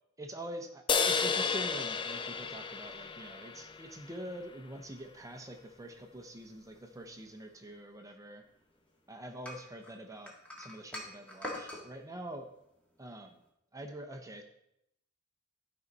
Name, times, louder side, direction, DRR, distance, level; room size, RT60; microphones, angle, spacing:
voice 1, 0.2-8.4 9.1-12.5 13.0-13.4 13.7-14.4, right 1 dB, 15° right, 5 dB, 0.7 m, -45 dB
sound 1, 0.9-4.4, left 5 dB, 20° left, 0.4 m, -32 dB
sound 2, 9.4-11.8, left 1 dB, 5° left, 1.7 m, -42 dB
12.5 x 5.4 x 4.0 m, 0.79 s
head